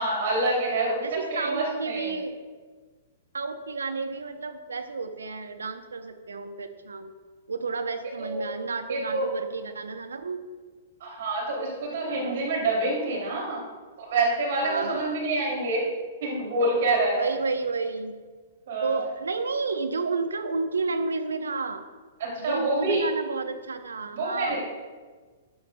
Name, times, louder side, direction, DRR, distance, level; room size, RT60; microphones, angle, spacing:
voice 1, 0.0-2.1 8.2-8.5 8.9-9.3 11.0-13.6 14.0-15.8 16.2-17.3 18.7-19.0 22.2-23.0 24.1-24.6, right 2 dB, 55° right, -2 dB, 2.8 m, -27 dB
voice 2, 1.0-2.4 3.3-7.1 7.5-10.4 12.1-12.5 14.6-15.2 17.1-18.1 18.8-21.8 22.4-24.6, right 4 dB, 75° right, 7 dB, 0.8 m, -31 dB
12.5 x 9.0 x 2.3 m, 1.4 s
figure-of-eight pair, 110°, 0 cm